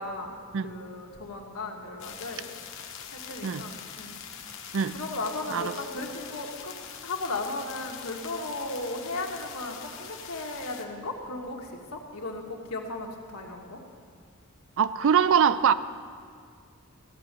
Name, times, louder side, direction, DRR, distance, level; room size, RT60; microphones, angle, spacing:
voice 1, 0.0-0.4 0.6-2.5 3.1-4.1 4.9-13.8, left 2 dB, 80° left, 1.7 m, -36 dB
sound 1, 2.0-10.8, left 8 dB, 60° left, 1.1 m, -43 dB
voice 2, 14.8-15.7, right 7 dB, 60° right, 0.4 m, -22 dB
16.0 x 6.3 x 8.2 m
head